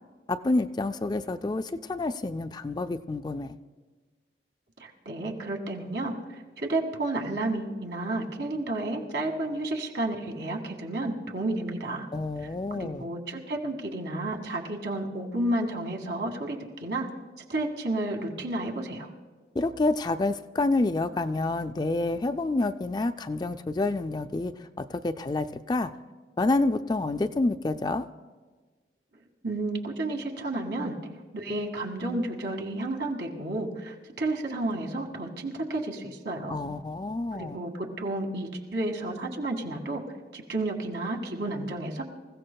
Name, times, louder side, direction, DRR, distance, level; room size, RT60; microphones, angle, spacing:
voice 1, 0.3-3.5 12.1-13.1 19.5-25.9 26.4-28.1 36.5-37.6, left 2 dB, 25° left, 9 dB, 0.3 m, -28 dB
voice 2, 4.8-12.1 12.7-17.1 17.5-19.1 29.4-31.0 31.3-36.6 37.3-40.0 40.3-42.0, right 2 dB, 80° right, 2 dB, 2.0 m, -31 dB
27.0 x 15.5 x 2.3 m, 1.4 s
head